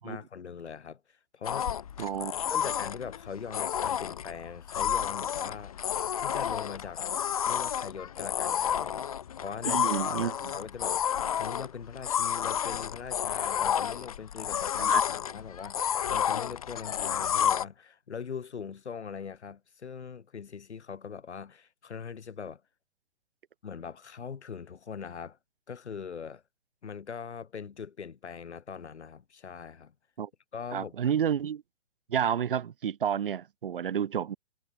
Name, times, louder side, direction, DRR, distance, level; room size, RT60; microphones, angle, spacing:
voice 1, 0.0-1.7 2.0-2.1 2.5-7.0 7.5-9.1 9.4-11.0 11.3-22.6 23.6-25.4 25.7-26.4 26.8-29.9 30.5-31.1, left 6 dB, 80° left, 4.5 m, -41 dB
sound 1, 1.4-17.6, left 9 dB, 35° left, 0.7 m, -30 dB
voice 2, 2.0-2.3 9.6-10.3 14.8-15.0 30.2-30.3 30.7-31.6 32.1-34.4, right 8 dB, 50° right, 2.6 m, -30 dB
hypercardioid pair, 170°, 34 cm